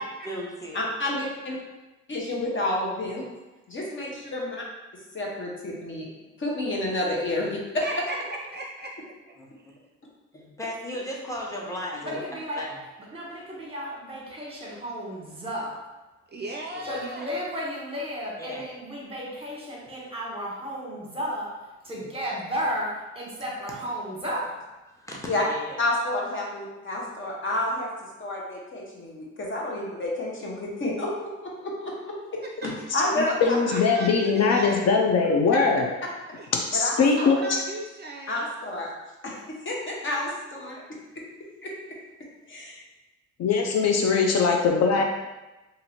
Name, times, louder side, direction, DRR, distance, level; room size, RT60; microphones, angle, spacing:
voice 1, 0.2-0.8 9.4-9.5 10.3-12.2 12.6-12.7 16.7-17.0 18.4-18.6 21.9-22.1 24.9-25.8, left 1 dB, 10° left, -3 dB, 0.9 m, -36 dB
voice 2, 0.7-1.6 2.1-3.3 3.7-4.6 5.1-6.1 6.4-7.8 25.3-25.4 25.8-27.9 28.2-31.3 31.6-31.9 32.6-33.6 36.7-37.4 38.3-38.9 39.2-40.8 41.6-42.0 42.5-42.8, left 1 dB, 40° left, -3 dB, 1.0 m, -29 dB
voice 3, 7.8-8.2 8.5-8.9 11.5-11.6 16.3-17.3 33.7-35.0 36.3-36.5 37.2-38.5 43.7-43.8 44.9-45.0, right 2 dB, 35° right, 0 dB, 0.5 m, -36 dB
voice 4, 12.0-12.6 13.1-15.8 16.8-24.6, equal, 20° right, -4 dB, 1.2 m, -33 dB
voice 5, 32.9-35.9 36.7-37.6 43.4-45.0, left 5 dB, 60° left, 2 dB, 0.5 m, -21 dB
2.8 x 2.6 x 4.1 m, 1.1 s
cardioid pair, 90°, 30 cm